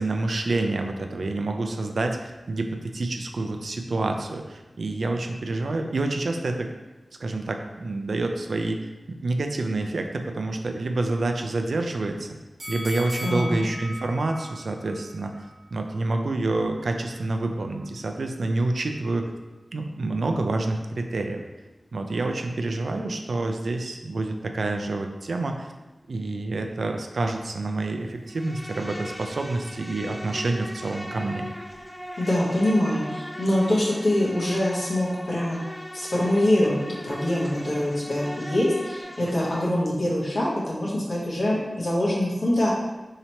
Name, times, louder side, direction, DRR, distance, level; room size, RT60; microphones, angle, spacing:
voice 1, 0.0-6.7 7.2-12.3 12.7-15.3 15.7-19.3 19.7-21.4 21.9-25.7 26.1-31.5, right 2 dB, 80° right, 4 dB, 0.3 m, -28 dB
sound 1, 12.6-15.7 16.1-16.2, left 1 dB, 45° right, 1.0 m, -38 dB
voice 2, 13.2-13.6 32.2-35.6 35.9-42.7, left 1 dB, 75° left, -7 dB, 0.9 m, -24 dB
Insect, 28.3-39.7, equal, 5° left, 0.5 m, -39 dB
2.9 x 2.8 x 4.3 m, 1.1 s
wide cardioid pair, 70°, 0 cm